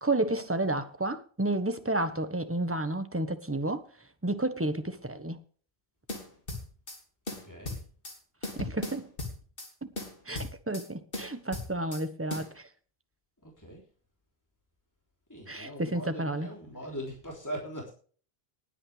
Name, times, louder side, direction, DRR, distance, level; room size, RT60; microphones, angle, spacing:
voice 1, 0.0-3.8 4.2-5.4 8.4-9.1 9.8-9.9 10.2-12.7 15.5-16.5, right 2 dB, 15° right, 1.3 m, -31 dB
sound 1, 6.1-7.0 7.3-8.2 8.4-9.7 10.0-10.9 11.1-12.0 12.3-12.5, left 2 dB, 60° left, 3.4 m, -37 dB
voice 2, 7.4-7.8 13.4-13.8 15.3-17.9, equal, 15° left, 3.5 m, -41 dB
20.0 x 8.7 x 3.4 m
omnidirectional pair, 1.0 m